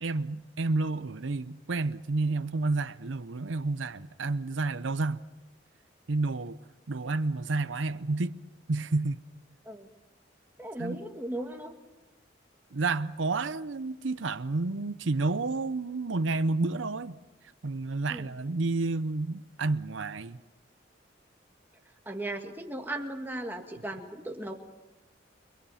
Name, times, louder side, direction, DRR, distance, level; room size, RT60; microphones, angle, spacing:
voice 1, 0.0-5.2 6.1-6.6 6.9-8.4 8.7-9.2 10.8-11.0 12.7-17.1 17.6-20.4, right 3 dB, 90° right, 0.7 m, -30 dB
voice 2, 10.6-11.7 18.1-18.3 22.1-24.5, right 1 dB, 10° right, 1.9 m, -37 dB
29.5 x 22.0 x 5.7 m
head